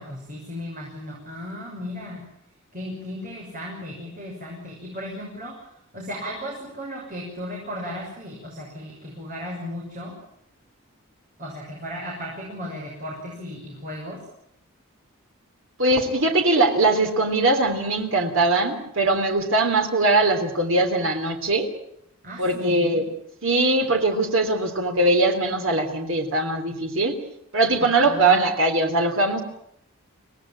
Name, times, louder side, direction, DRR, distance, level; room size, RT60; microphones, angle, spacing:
voice 1, 0.0-2.2 2.7-5.5 5.9-10.1 11.4-14.2 22.2-23.0 28.0-28.3, left 1 dB, 40° right, -2 dB, 6.5 m, -35 dB
voice 2, 15.8-21.7 22.4-23.0 23.4-27.1 27.5-29.4, right 2 dB, 60° right, 4 dB, 3.3 m, -21 dB
25.0 x 18.0 x 8.8 m, 0.73 s
head